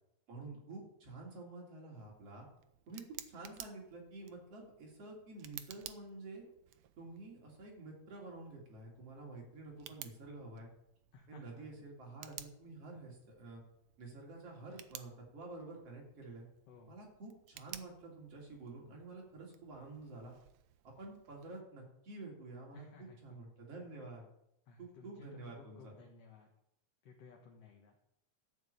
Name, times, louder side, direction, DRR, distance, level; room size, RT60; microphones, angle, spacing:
voice 1, 0.3-2.5 2.9-6.4 7.0-10.7 11.3-13.6 14.0-16.5 16.9-20.3 20.8-24.3 24.8-25.9, right 2 dB, 55° right, -2 dB, 4.0 m, -49 dB
Tick, 1.9-21.6, right 13 dB, 75° right, 1.9 m, -56 dB
voice 2, 11.1-11.7 16.7-16.9 22.7-23.2 24.7-26.5 27.0-28.1, left 5 dB, 60° left, 0 dB, 2.4 m, -57 dB
13.0 x 6.1 x 8.7 m, 0.81 s
omnidirectional pair, 3.4 m